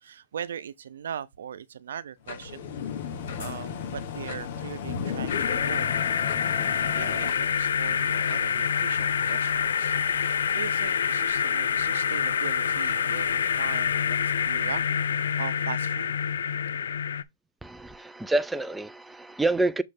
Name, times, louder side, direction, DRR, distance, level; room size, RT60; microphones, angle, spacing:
voice 1, 0.0-2.7 3.4-5.9 6.8-14.2 14.5-16.1, right 8 dB, 75° right, 0.7 m, -39 dB
sound 1, 2.3-9.4, left 4 dB, 60° left, 2.9 m, -46 dB
sound 2, 2.3-7.3, left 7 dB, 45° left, 1.1 m, -34 dB
sound 3, 5.3-17.2, left 7 dB, 90° left, 0.6 m, -26 dB
voice 2, 17.6-19.8, right 2 dB, 5° right, 0.4 m, -27 dB
6.8 x 3.2 x 5.3 m
hypercardioid pair, 165°, 0 cm